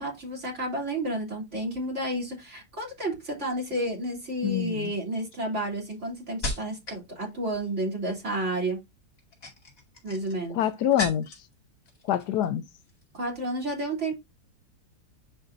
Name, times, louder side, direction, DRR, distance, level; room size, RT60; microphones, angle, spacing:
voice 1, 0.0-8.8 10.0-10.6 13.1-14.2, right 1 dB, 40° right, 3.5 m, -31 dB
sound 1, 3.6-4.0 4.7-7.1 7.4-7.9 9.1-11.5 11.8-12.5 12.8-13.0, left 2 dB, 55° left, 2.8 m, -38 dB
voice 2, 4.4-4.9 10.5-11.3 12.1-12.6, left 10 dB, 75° left, 1.2 m, -25 dB
9.6 x 4.9 x 2.6 m
omnidirectional pair, 1.8 m